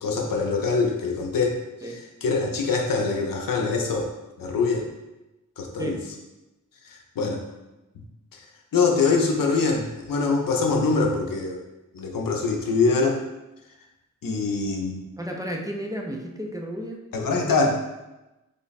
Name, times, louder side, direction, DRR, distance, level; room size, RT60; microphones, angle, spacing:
voice 1, 0.0-1.6 1.8-1.9 2.2-4.1 4.4-4.8 5.6-6.0 6.9-7.4 8.3-8.4 8.7-11.6 11.9-13.2 14.2-15.0 17.1-17.8, left 4 dB, 80° left, 1 dB, 0.6 m, -24 dB
voice 2, 15.2-17.0, equal, 10° right, 0 dB, 0.4 m, -32 dB
3.3 x 2.1 x 4.0 m, 1.0 s
cardioid pair, 65°, 33 cm